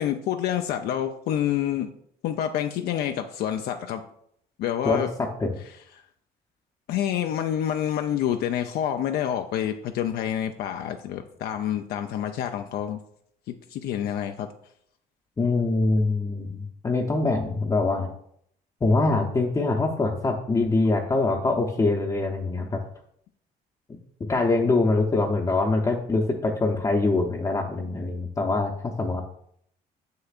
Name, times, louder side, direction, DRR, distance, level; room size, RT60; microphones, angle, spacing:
voice 1, 0.0-1.9 2.2-4.0 4.6-5.1 6.9-13.0 13.5-14.5, left 10 dB, 70° left, 6 dB, 0.5 m, -28 dB
voice 2, 15.4-18.1 18.8-22.8 24.3-29.2, left 3 dB, 20° left, -1 dB, 0.7 m, -24 dB
6.8 x 6.6 x 2.4 m, 0.69 s
cardioid pair, 110°, 17 cm